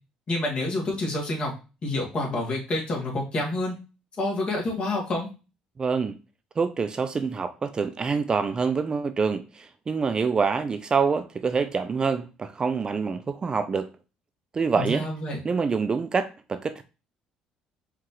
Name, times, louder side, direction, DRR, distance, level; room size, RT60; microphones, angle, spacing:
voice 1, 0.3-1.5 1.8-3.7 4.2-5.3 14.8-15.4, left 2 dB, 40° left, 2.0 m, -28 dB
voice 2, 5.8-6.1 6.6-13.9 14.5-15.0 15.4-16.8, right 5 dB, 30° right, 0.4 m, -26 dB
4.8 x 3.5 x 3.0 m
supercardioid pair, 85°, 3 cm